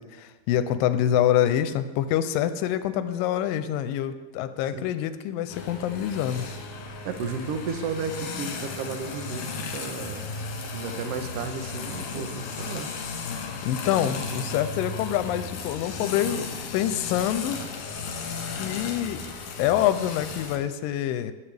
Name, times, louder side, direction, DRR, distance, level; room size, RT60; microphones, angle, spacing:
voice 1, 0.0-6.5 13.6-17.6 18.5-19.3 19.6-21.3, left 11 dB, 90° left, 12 dB, 2.3 m, -26 dB
sound 1, 5.5-20.6, left 4 dB, 70° left, 2.9 m, -35 dB
voice 2, 7.0-10.2 10.7-12.9, right 5 dB, 65° right, 6 dB, 1.6 m, -33 dB
21.5 x 8.5 x 3.4 m, 1.3 s
omnidirectional pair, 3.9 m